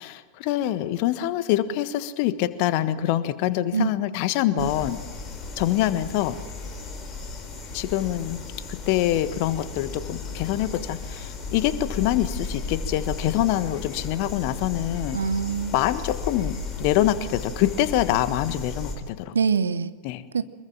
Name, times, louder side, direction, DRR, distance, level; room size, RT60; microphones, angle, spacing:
voice 1, 0.0-5.0 5.6-6.4 7.7-8.4 8.7-15.2 15.7-19.3 20.0-20.2, left 13 dB, 45° left, 13 dB, 1.4 m, -25 dB
sound 1, 4.6-19.0, left 3 dB, 20° left, 4.4 m, -35 dB
voice 2, 15.1-15.8 19.3-19.9 20.3-20.4, right 5 dB, 70° right, 14 dB, 1.0 m, -24 dB
24.5 x 22.0 x 7.6 m, 1.3 s
figure-of-eight pair, 90°, 0 cm